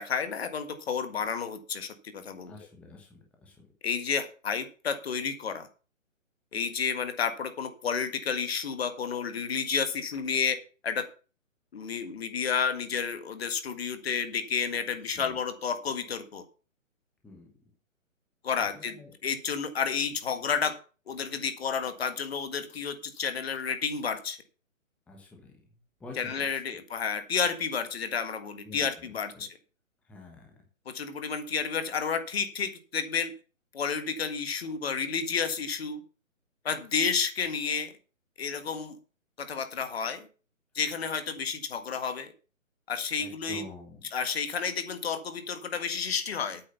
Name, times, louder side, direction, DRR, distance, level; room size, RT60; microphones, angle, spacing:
voice 1, 0.0-2.5 3.8-5.7 6.5-10.6 10.8-11.1 11.7-16.4 18.4-20.8 21.1-24.4 26.2-29.5 30.8-33.3 33.7-36.0 36.6-37.9 38.4-39.0 39.4-40.3 40.7-42.3 42.9-43.6 44.1-46.6, left 6 dB, 50° left, 9 dB, 1.8 m, -31 dB
voice 2, 2.4-3.7 15.1-15.4 17.2-17.5 18.7-19.1 25.1-25.5 26.0-26.4 28.6-29.5 30.0-30.5 31.1-31.3 43.2-44.1, left 3 dB, 5° left, 1 dB, 1.1 m, -48 dB
8.7 x 6.4 x 7.0 m, 0.36 s
hypercardioid pair, 150°, 40 cm